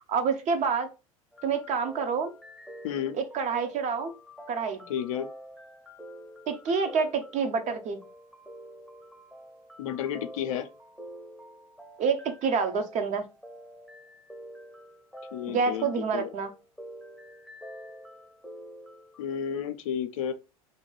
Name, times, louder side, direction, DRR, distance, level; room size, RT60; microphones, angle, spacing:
voice 1, 0.1-0.9 1.4-2.3 3.1-4.1 4.5-4.9 6.5-8.0 12.0-13.3 15.5-16.5, right 5 dB, 40° right, 0.7 m, -27 dB
sound 1, 1.3-19.2, equal, ahead, 0.7 m, -47 dB
voice 2, 2.8-3.2 4.9-5.3 9.8-10.7 15.3-15.9 16.1-16.3 19.2-20.3, left 9 dB, 70° left, 0.5 m, -31 dB
2.8 x 2.2 x 3.1 m
hypercardioid pair, 85°, 18 cm